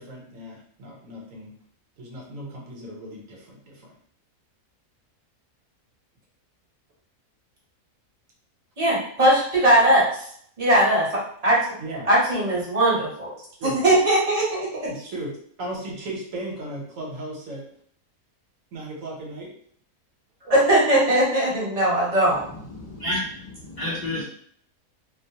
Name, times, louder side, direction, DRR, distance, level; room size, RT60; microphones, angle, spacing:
voice 1, 0.0-1.5 2.0-3.9 11.8-12.1 13.6-13.8 14.9-15.3 15.6-17.6 18.7-19.5, right 1 dB, 70° right, -2 dB, 1.1 m, -36 dB
voice 2, 8.8-10.3 10.6-11.6 12.1-13.3 13.6-14.9 20.5-22.4, right 1 dB, 35° right, -5 dB, 0.8 m, -20 dB
voice 3, 22.4-24.2, left 1 dB, 60° left, -7 dB, 0.4 m, -31 dB
2.5 x 2.0 x 2.7 m, 0.62 s
omnidirectional pair, 1.5 m